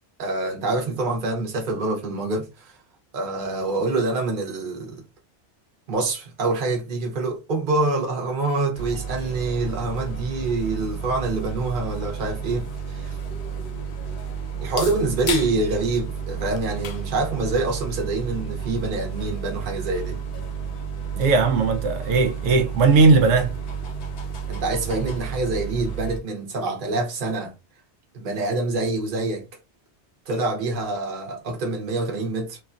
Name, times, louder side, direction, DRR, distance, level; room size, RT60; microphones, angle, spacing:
voice 1, 0.2-2.7 3.1-5.0 5.9-13.2 14.6-20.2 24.5-27.5 28.1-29.5 30.3-32.6, right 2 dB, 50° right, 1.0 m, -26 dB
sound 1, 8.7-26.2, right 6 dB, 75° left, 1.0 m, -32 dB
sound 2, 14.5-20.2, left 6 dB, 60° left, 0.5 m, -39 dB
voice 2, 21.2-23.5, right 4 dB, 90° right, 0.9 m, -18 dB
3.1 x 2.3 x 2.4 m
omnidirectional pair, 1.2 m